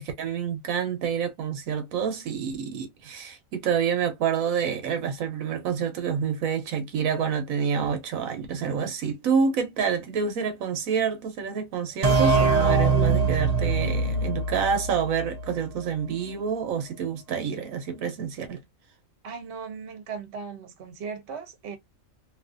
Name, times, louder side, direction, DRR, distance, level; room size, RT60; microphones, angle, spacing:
voice 1, 0.0-18.6, right 7 dB, 90° right, 1.2 m, -28 dB
sound 1, 12.0-15.6, right 4 dB, 40° right, 0.6 m, -23 dB
voice 2, 19.2-21.8, right 5 dB, 60° right, 1.0 m, -37 dB
2.8 x 2.5 x 2.4 m
omnidirectional pair, 1.4 m